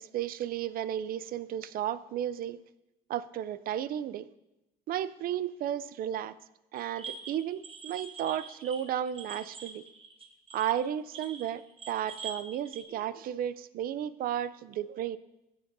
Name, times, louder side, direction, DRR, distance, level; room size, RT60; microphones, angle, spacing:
voice 1, 0.0-2.6 3.1-4.3 4.9-6.4 6.7-9.9 10.5-15.2, right 10 dB, 60° right, 16 dB, 0.5 m, -33 dB
sound 1, 6.8-12.8, right 5 dB, 35° right, 1.2 m, -45 dB
15.5 x 7.9 x 2.7 m, 0.93 s
cardioid pair, 110°, 17 cm